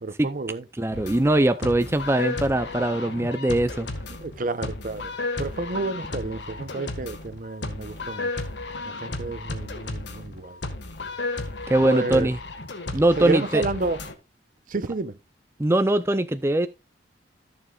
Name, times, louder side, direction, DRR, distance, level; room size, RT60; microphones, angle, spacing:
voice 1, 0.0-0.6 4.2-5.1 5.4-8.3 8.9-10.6 11.8-12.3 13.2-14.0 14.7-15.2, right 3 dB, 50° right, 0.7 m, -30 dB
voice 2, 0.8-3.9 11.7-12.4 12.9-13.6 15.6-16.7, right 1 dB, 15° right, 0.5 m, -21 dB
sound 1, 0.9-14.1, left 2 dB, 90° left, 1.7 m, -34 dB
14.5 x 7.1 x 2.4 m
head